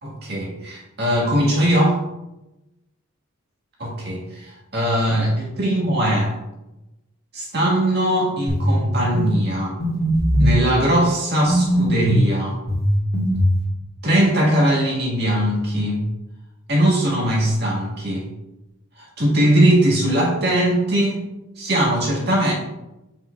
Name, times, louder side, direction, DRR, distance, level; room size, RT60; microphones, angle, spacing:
voice 1, 0.0-2.0 3.8-6.3 7.3-9.8 10.4-12.6 14.0-16.1 16.7-18.3 19.0-21.2 21.6-22.5, right 1 dB, 45° right, -4 dB, 2.2 m, -20 dB
sound 1, 8.5-8.7 9.1-9.3 9.8-10.6 11.5-12.2 12.7-13.6, equal, 40° left, 1.9 m, -19 dB
7.7 x 5.7 x 2.6 m, 0.96 s
head